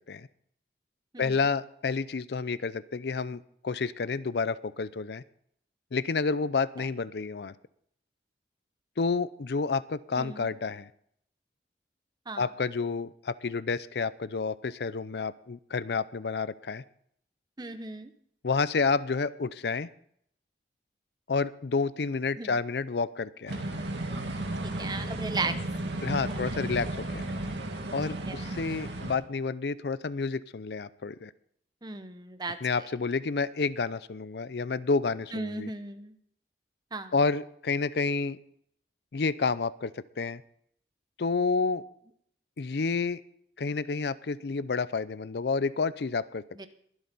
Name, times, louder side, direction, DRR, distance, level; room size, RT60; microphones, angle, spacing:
voice 1, 1.2-5.2 5.9-7.5 9.0-10.9 12.4-16.8 18.4-19.9 21.3-23.6 26.0-27.3 27.9-31.3 32.6-35.7 37.1-38.4 39.1-40.4 41.2-41.8 42.6-43.2 43.6-46.4, left 4 dB, 70° left, 17 dB, 0.5 m, -30 dB
voice 2, 10.2-10.5 12.3-12.4 17.6-18.1 22.4-22.5 24.6-25.5 26.3-26.4 28.3-28.5 31.8-32.6 35.3-36.1 36.9-37.1 46.6-46.7, right 3 dB, 25° right, 10 dB, 0.9 m, -36 dB
sound 1, 23.5-29.1, right 1 dB, 90° right, 2.1 m, -34 dB
23.0 x 8.0 x 4.1 m, 0.67 s
head